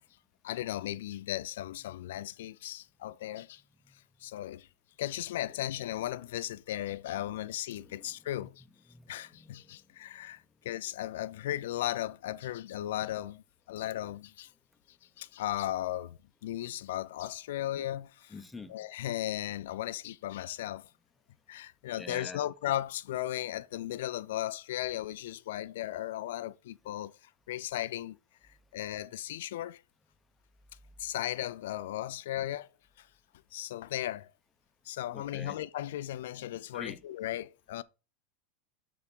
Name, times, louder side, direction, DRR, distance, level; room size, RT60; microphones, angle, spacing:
voice 1, 0.4-3.6 4.2-4.7 5.0-8.6 9.1-14.5 15.2-18.3 18.7-20.9 21.5-27.2 27.5-28.2 28.7-29.8 31.0-32.7 33.0-33.1 33.5-34.3 34.9-37.8, left 13 dB, 80° left, 0.4 m, -36 dB
voice 2, 7.7-8.5 8.9-9.8 18.3-18.9 21.9-22.5 35.1-35.6 36.7-37.0, left 3 dB, 10° left, 0.8 m, -47 dB
6.7 x 3.6 x 5.3 m
supercardioid pair, 130°, 0 cm